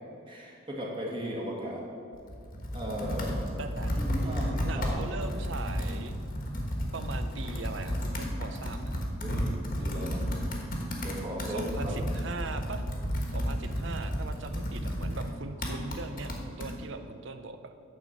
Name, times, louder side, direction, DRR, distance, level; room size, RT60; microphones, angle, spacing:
voice 1, 0.3-1.8 2.7-3.5 3.9-5.0 9.2-9.4 9.8-10.2 11.0-11.9, equal, 25° right, -3 dB, 1.6 m, -36 dB
Computer keyboard, 2.1-16.7, equal, 40° left, 1.3 m, -32 dB
voice 2, 3.6-6.2 6.9-9.0 11.4-12.8 13.3-17.7, right 3 dB, 60° right, 8 dB, 0.6 m, -40 dB
9.5 x 4.1 x 7.3 m, 2.5 s
head